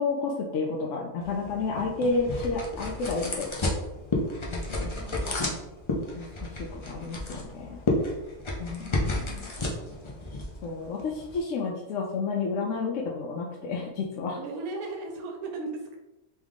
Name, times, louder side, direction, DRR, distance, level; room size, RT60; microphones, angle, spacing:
voice 1, 0.0-3.5 4.5-4.9 6.1-7.8 8.6-9.5 10.6-14.4, left 4 dB, 65° left, 0 dB, 0.8 m, -31 dB
sound 1, 1.2-11.4, left 2 dB, 45° left, 0.3 m, -32 dB
voice 2, 4.7-5.5 14.4-16.0, right 3 dB, 85° right, 3 dB, 1.1 m, -37 dB
3.4 x 3.1 x 3.6 m, 1.0 s
omnidirectional pair, 1.5 m